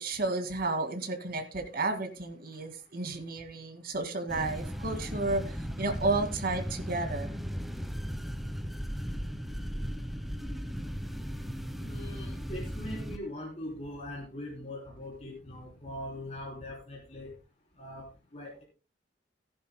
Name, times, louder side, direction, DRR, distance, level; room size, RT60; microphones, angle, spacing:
voice 1, 0.0-7.3, right 3 dB, 55° right, 6 dB, 2.2 m, -32 dB
sound 1, 4.3-13.2, equal, ahead, 0.9 m, -36 dB
voice 2, 11.7-17.3 17.7-18.6, left 1 dB, 40° left, -3 dB, 3.6 m, -42 dB
19.0 x 10.5 x 2.2 m, 0.31 s
head